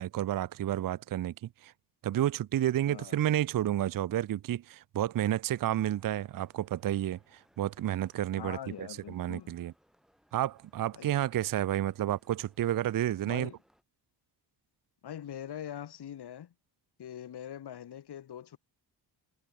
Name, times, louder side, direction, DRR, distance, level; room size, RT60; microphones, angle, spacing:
voice 1, 0.0-1.7 2.0-9.7 10.3-13.5, right 12 dB, 50° right, 0.6 m, -31 dB
voice 2, 2.9-3.2 8.4-9.5 11.0-11.1 13.3-13.6 15.0-16.5 17.0-18.6, left 10 dB, 65° left, 2.0 m, -43 dB
sound 1, 5.5-13.8, equal, ahead, 3.7 m, -69 dB
wide cardioid pair, 170°, 44 cm